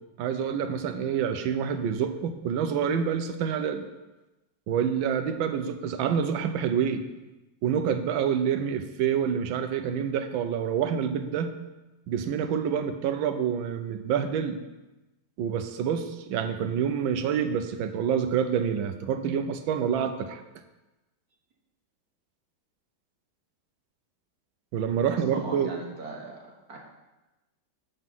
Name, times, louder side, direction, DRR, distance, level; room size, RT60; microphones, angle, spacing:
voice 1, 0.2-3.8 4.7-7.0 7.6-11.5 12.1-14.6 15.4-20.4 24.7-25.7, right 8 dB, 85° right, 8 dB, 1.5 m, -27 dB
voice 2, 25.1-26.4 26.7-26.8, right 3 dB, 50° right, -1 dB, 2.0 m, -38 dB
8.5 x 5.5 x 6.0 m, 1.0 s
omnidirectional pair, 2.1 m